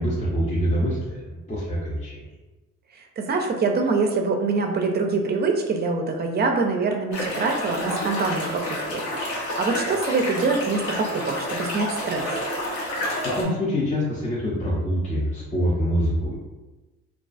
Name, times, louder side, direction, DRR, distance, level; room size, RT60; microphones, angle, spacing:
voice 1, 0.0-2.2 13.2-16.4, equal, 25° left, -5 dB, 0.5 m, -25 dB
voice 2, 2.9-12.3, right 4 dB, 35° right, 4 dB, 0.4 m, -25 dB
sound 1, 7.1-13.4, left 1 dB, 80° left, 0.9 m, -29 dB
2.3 x 2.3 x 2.4 m, 1.1 s
cardioid pair, 90°, 30 cm